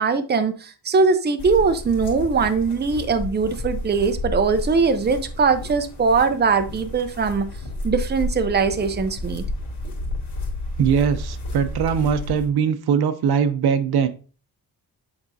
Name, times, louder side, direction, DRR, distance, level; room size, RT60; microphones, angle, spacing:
voice 1, 0.0-7.5 7.8-9.4, right 4 dB, 25° right, 0.6 m, -21 dB
sound 1, 1.4-12.5, left 1 dB, 80° left, 2.8 m, -31 dB
voice 2, 10.8-14.1, right 7 dB, 70° right, 0.7 m, -21 dB
8.7 x 4.2 x 2.7 m
cardioid pair, 110°, 39 cm